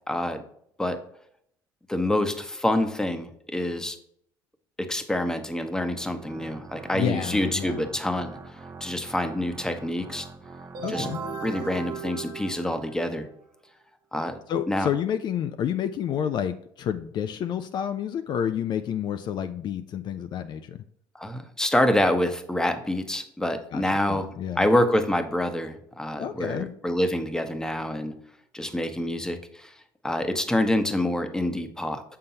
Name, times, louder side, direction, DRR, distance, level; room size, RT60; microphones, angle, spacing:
voice 1, 0.1-0.4 0.8-1.0 1.9-4.0 4.8-10.3 10.9-11.1 11.4-13.3 14.1-14.4 14.7-14.9 21.1-28.1 28.5-29.7 30.0-32.0, left 1 dB, 5° left, 8 dB, 0.8 m, -26 dB
Organ, 5.7-12.3, right 3 dB, 30° right, 0.7 m, -45 dB
voice 2, 6.9-7.8 10.8-11.2 14.5-20.8 23.7-23.8 24.1-24.7 26.2-26.7, left 9 dB, 55° left, 9 dB, 0.4 m, -29 dB
sound 1, 10.7-13.4, right 6 dB, 60° right, 0.8 m, -37 dB
6.5 x 5.6 x 2.8 m, 0.68 s
cardioid pair, 95°, 9 cm